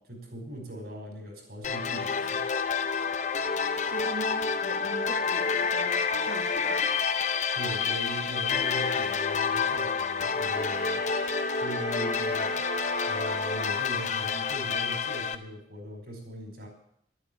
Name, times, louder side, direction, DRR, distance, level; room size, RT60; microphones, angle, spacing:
voice 1, 0.0-2.4 7.5-11.3 11.6-12.6 13.1-16.7, equal, 60° right, 2 dB, 4.9 m, -40 dB
sound 1, 1.6-15.3, left 5 dB, 40° left, 0.7 m, -28 dB
voice 2, 3.9-7.0, right 2 dB, 40° right, -1 dB, 1.6 m, -41 dB
Bowed string instrument, 10.4-14.1, right 6 dB, 85° right, 0.5 m, -40 dB
12.0 x 9.8 x 8.7 m, 0.71 s
head